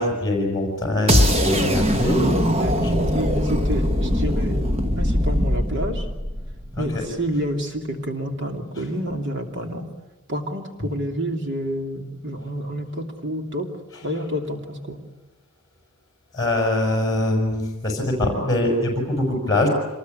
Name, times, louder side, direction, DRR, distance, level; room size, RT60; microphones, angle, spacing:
voice 1, 0.0-2.3 6.7-6.8 16.3-19.7, left 1 dB, 15° left, 1 dB, 6.1 m, -23 dB
sound 1, 1.1-7.1, equal, 30° right, 1.5 m, -21 dB
voice 2, 2.0-4.6 5.0-6.1 6.8-9.9 10.3-13.7 14.0-15.0, equal, 55° right, 4 dB, 2.9 m, -28 dB
26.5 x 20.5 x 9.6 m, 1.2 s
head